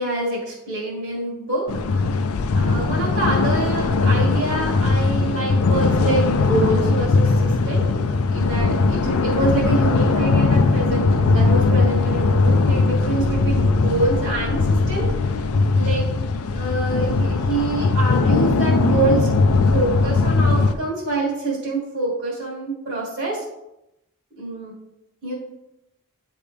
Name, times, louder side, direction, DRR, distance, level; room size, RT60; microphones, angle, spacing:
voice 1, 0.0-2.3 2.5-8.0 8.3-15.3 15.7-16.1 16.5-19.3 19.7-23.4 24.4-24.8 25.2-25.3, right 2 dB, 55° right, -8 dB, 1.9 m, -26 dB
sound 1, 1.7-20.7, left 3 dB, 80° left, 0.5 m, -19 dB
9.9 x 3.4 x 3.4 m, 0.89 s
head